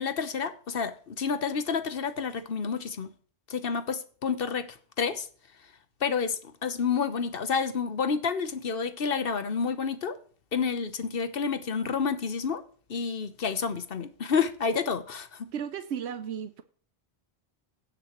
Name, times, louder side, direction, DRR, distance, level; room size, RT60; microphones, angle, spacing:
voice 1, 0.0-3.1 3.5-5.3 6.0-10.2 10.5-12.6 12.9-15.5, left 6 dB, 60° left, 1.1 m, -29 dB
voice 2, 15.5-16.6, right 8 dB, 85° right, 1.0 m, -34 dB
16.5 x 6.7 x 3.1 m
omnidirectional pair, 1.1 m